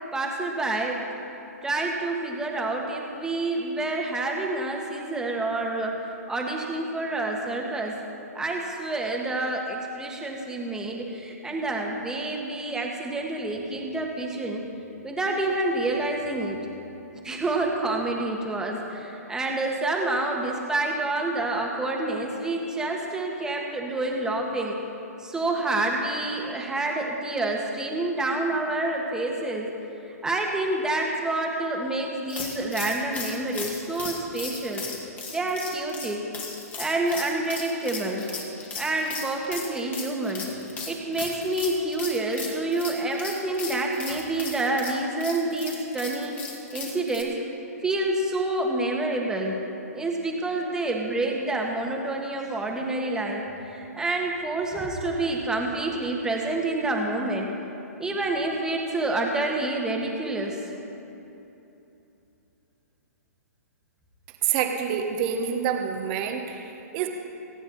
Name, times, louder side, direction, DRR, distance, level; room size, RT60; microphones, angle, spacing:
voice 1, 0.1-1.0 1.6-5.9 6.3-7.9 8.4-14.6 15.0-16.6 17.2-24.8 25.2-29.7 30.1-34.9 35.3-36.2 36.8-38.3 38.7-40.5 40.9-46.4 46.7-47.4 47.8-49.6 49.9-53.4 53.7-57.5 58.0-60.6, right 2 dB, 5° right, 0 dB, 1.8 m, -28 dB
sound 1, 32.3-47.2, left 4 dB, 20° left, 2.3 m, -37 dB
voice 2, 64.4-67.1, right 8 dB, 40° right, 4 dB, 1.4 m, -27 dB
23.0 x 9.5 x 4.3 m, 2.9 s
hypercardioid pair, 130°, 9 cm